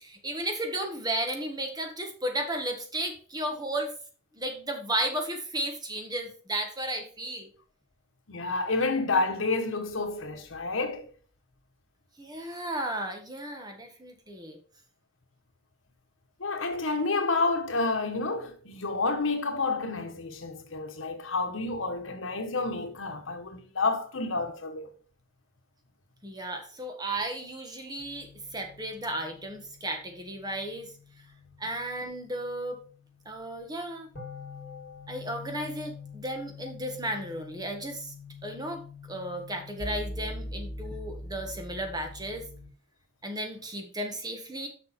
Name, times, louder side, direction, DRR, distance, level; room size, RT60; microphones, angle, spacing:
voice 1, 0.0-3.9 4.3-7.5 12.2-14.6 26.2-30.9 31.6-32.8 33.2-34.1 35.1-38.1 38.4-38.8 39.1-42.5 43.2-44.7, right 1 dB, 20° right, 1.5 m, -34 dB
voice 2, 8.3-11.1 16.4-24.9, left 3 dB, 80° left, 1.3 m, -29 dB
sound 1, 28.0-42.7, left 2 dB, 55° left, 2.5 m, -44 dB
6.5 x 6.0 x 4.4 m
head